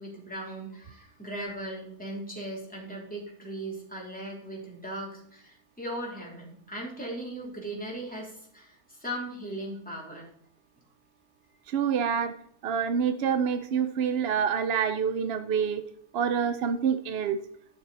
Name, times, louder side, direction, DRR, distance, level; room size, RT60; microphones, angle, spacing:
voice 1, 0.0-10.3, right 1 dB, 5° left, -4 dB, 3.2 m, -38 dB
voice 2, 11.7-12.3 12.6-15.8 16.1-17.4, right 7 dB, 65° right, 9 dB, 0.6 m, -27 dB
12.0 x 7.0 x 4.1 m, 0.67 s
omnidirectional pair, 1.7 m